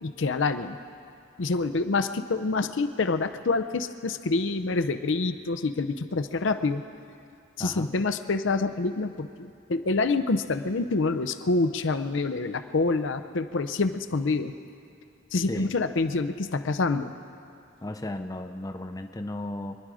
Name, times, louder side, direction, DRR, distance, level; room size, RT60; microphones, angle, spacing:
voice 1, 0.0-0.8 1.4-6.8 7.6-14.5 15.3-17.1, left 3 dB, 65° left, 9 dB, 0.6 m, -27 dB
voice 2, 7.6-7.9 15.5-15.7 17.8-19.8, left 1 dB, 15° left, 6 dB, 0.5 m, -35 dB
26.0 x 10.5 x 4.9 m, 2.4 s
head